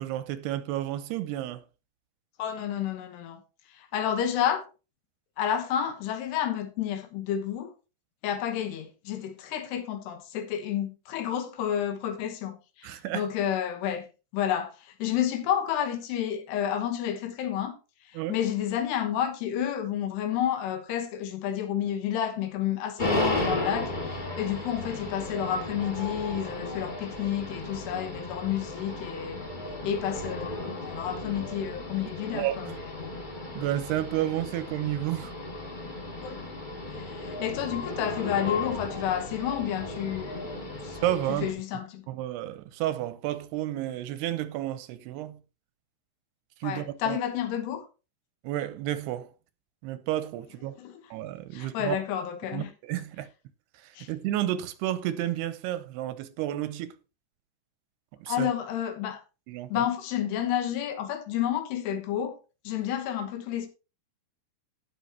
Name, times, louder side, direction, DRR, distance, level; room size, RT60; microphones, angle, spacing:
voice 1, 0.0-1.6 12.8-13.2 18.2-18.4 32.3-32.8 33.6-35.3 41.0-41.5 42.1-45.4 46.6-47.2 48.4-49.3 49.8-50.7 51.1-52.0 52.5-53.3 54.1-56.9 58.2-58.5 59.5-59.8, right 13 dB, 85° right, 2.7 m, -31 dB
voice 2, 2.4-3.4 3.8-4.6 5.4-7.7 8.2-14.0 14.3-17.8 18.1-23.9 24.4-29.4 29.8-33.1 36.2-36.4 36.9-40.5 40.8-41.0 41.4-42.1 46.6-47.9 50.8-51.0 51.5-52.7 54.0-54.1 58.3-59.2 59.7-62.4 62.6-63.7, left 10 dB, 80° left, 3.2 m, -30 dB
sound 1, 23.0-41.5, left 2 dB, 65° left, 0.4 m, -35 dB
17.0 x 5.8 x 2.9 m
omnidirectional pair, 4.8 m